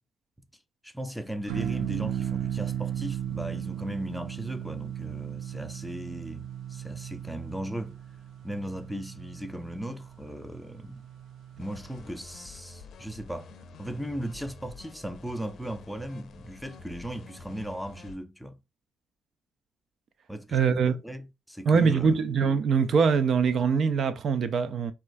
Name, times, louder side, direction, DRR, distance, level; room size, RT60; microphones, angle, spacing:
voice 1, 0.8-8.0 8.4-11.0 11.6-13.5 13.8-18.6 20.3-20.6 21.0-22.2, right 1 dB, ahead, 0.5 m, -37 dB
sound 1, 1.5-12.0, right 10 dB, 75° right, 0.7 m, -36 dB
sound 2, 11.6-18.2, left 4 dB, 65° left, 0.5 m, -48 dB
voice 2, 20.5-21.0 21.7-24.9, right 5 dB, 60° right, 0.4 m, -23 dB
4.2 x 2.3 x 2.5 m
cardioid pair, 90°, 0 cm